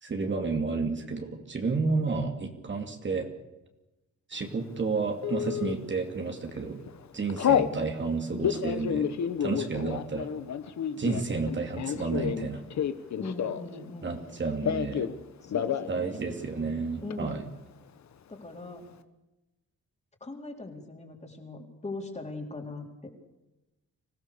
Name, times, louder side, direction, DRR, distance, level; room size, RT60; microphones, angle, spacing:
voice 1, 0.0-3.3 4.3-6.8 7.1-9.1 9.4-10.3 11.0-12.7 14.0-15.1 15.9-17.4, right 4 dB, 40° right, 4 dB, 2.7 m, -31 dB
Telephone, 5.2-5.7 6.3-6.6 6.9-7.7 8.3-13.8 14.1-15.2 15.4-15.9 16.2-16.3 16.6-17.1, left 8 dB, 70° left, 1.4 m, -29 dB
voice 2, 13.2-14.2 15.4-16.2 17.0-17.4 18.3-18.8 20.2-23.1, left 2 dB, 20° left, 2 dB, 4.1 m, -40 dB
25.5 x 17.5 x 6.9 m, 0.99 s
wide cardioid pair, 140°, 30 cm